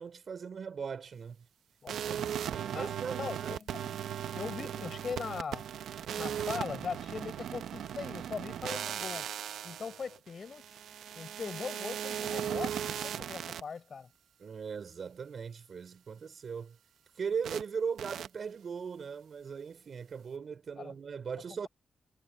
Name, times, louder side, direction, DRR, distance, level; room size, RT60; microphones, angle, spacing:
voice 1, 0.0-1.4 1.9-3.6 4.6-4.7 14.4-16.8 17.2-21.7, right 6 dB, 60° right, 3.6 m, -39 dB
sound 1, 1.9-13.6 17.4-17.6 18.0-18.3, right 9 dB, 85° right, 0.8 m, -37 dB
voice 2, 2.7-3.9 4.3-5.7 6.2-9.3 9.6-10.8 11.1-14.1 20.8-20.9, left 5 dB, 55° left, 5.9 m, -40 dB
cardioid pair, 75°, 0 cm